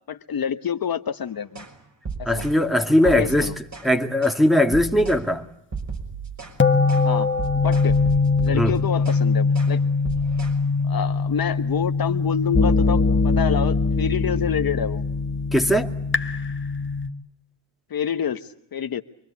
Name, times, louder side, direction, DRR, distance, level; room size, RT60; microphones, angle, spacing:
voice 1, 0.1-1.6 2.2-2.4 3.0-3.5 7.0-7.3 7.6-7.9 8.4-9.8 10.9-15.0 17.9-19.0, left 8 dB, 45° left, 1.2 m, -27 dB
sound 1, 1.6-1.7 2.1-2.6 3.1-3.9 4.2-4.4 4.7-5.3 5.7-6.6 6.9-7.1 7.4-9.2 9.5-9.8 10.1-10.6, right 5 dB, 35° right, 6.1 m, -34 dB
voice 2, 2.3-3.5 3.8-5.4 8.5-8.7 15.5-15.9, left 1 dB, ahead, 2.1 m, -19 dB
sound 2, 6.6-17.1, left 4 dB, 25° left, 1.4 m, -22 dB
26.5 x 23.5 x 8.3 m
cardioid pair, 75°, 49 cm